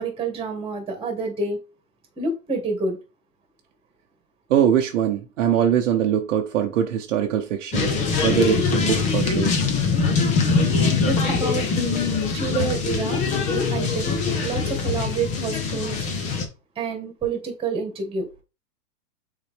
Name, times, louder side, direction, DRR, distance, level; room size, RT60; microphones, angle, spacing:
voice 1, 0.0-1.6 2.2-3.0 11.1-12.1 12.3-13.2 13.5-14.2 14.4-16.1 16.8-18.2, right 4 dB, 10° right, 2.1 m, -28 dB
voice 2, 4.5-8.0 8.2-9.6, right 9 dB, 50° right, 0.9 m, -22 dB
sound 1, 7.7-16.4, left 4 dB, 15° left, 0.7 m, -23 dB
6.9 x 4.1 x 3.4 m
hypercardioid pair, 145°, 49 cm